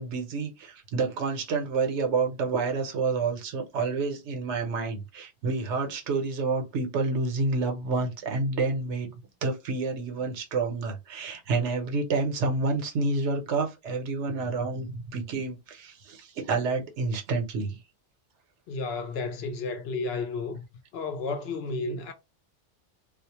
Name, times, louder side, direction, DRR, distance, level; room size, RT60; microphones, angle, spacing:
voice 1, 0.0-17.8, right 4 dB, 80° right, 1.0 m, -29 dB
voice 2, 18.7-20.6 20.9-22.1, left 3 dB, 65° left, 0.8 m, -32 dB
2.4 x 2.1 x 2.8 m
omnidirectional pair, 1.2 m